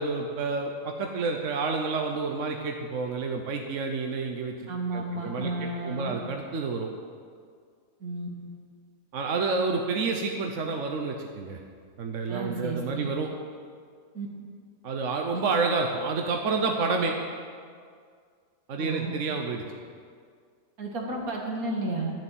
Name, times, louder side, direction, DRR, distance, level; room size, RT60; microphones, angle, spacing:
voice 1, 0.0-4.5 4.9-6.9 9.1-11.6 12.0-13.3 14.8-17.1 18.7-19.6, right 4 dB, 60° right, 3 dB, 1.3 m, -29 dB
voice 2, 4.7-6.2 8.0-8.3 12.3-13.1 14.1-14.3 18.8-19.1 20.8-22.1, right 2 dB, 85° right, -1 dB, 2.6 m, -32 dB
13.0 x 7.7 x 9.1 m, 2.1 s
omnidirectional pair, 1.5 m